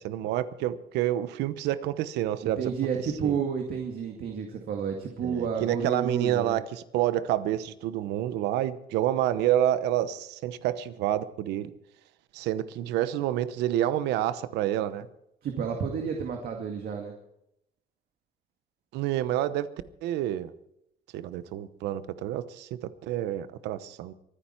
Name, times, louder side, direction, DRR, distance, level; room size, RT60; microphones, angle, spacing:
voice 1, 0.0-2.7 3.2-3.4 5.2-11.7 12.3-15.1 18.9-19.7 20.0-20.5 21.1-24.1, right 12 dB, 90° right, 14 dB, 1.0 m, -28 dB
voice 2, 2.4-6.6 15.4-17.1, right 6 dB, 60° right, 3 dB, 2.1 m, -31 dB
24.0 x 10.0 x 4.5 m, 0.82 s
cardioid pair, 110°, 17 cm